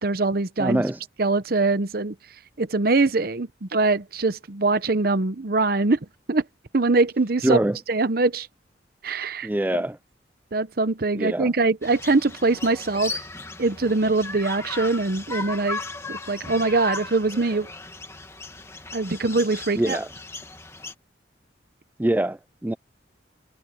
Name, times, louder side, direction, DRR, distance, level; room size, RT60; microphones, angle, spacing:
voice 1, 0.0-0.8 1.2-2.1 2.6-6.0 6.3-6.4 6.7-7.6 7.9-8.5 9.0-9.8 10.5-13.2 13.6-15.8 16.1-17.7 18.9-20.0, right 3 dB, 55° right, 0.8 m, -23 dB
voice 2, 0.6-1.0 7.4-7.8 9.4-10.0 11.1-11.5 19.8-20.1 22.0-22.7, right 1 dB, 10° right, 0.4 m, -24 dB
sound 1, 11.8-20.9, left 3 dB, 15° left, 2.1 m, -36 dB
head